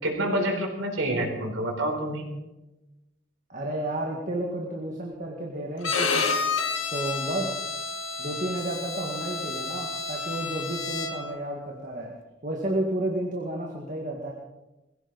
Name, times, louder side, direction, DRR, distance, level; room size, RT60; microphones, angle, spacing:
voice 1, 0.0-2.3, right 1 dB, 80° right, 2 dB, 4.2 m, -27 dB
voice 2, 3.5-6.4 6.9-7.6 8.2-12.1 12.4-14.3, right 1 dB, 40° right, 0 dB, 1.9 m, -31 dB
Bowed string instrument, 5.8-11.4, left 4 dB, 85° left, 1.8 m, -30 dB
21.5 x 16.0 x 4.1 m, 1.0 s
head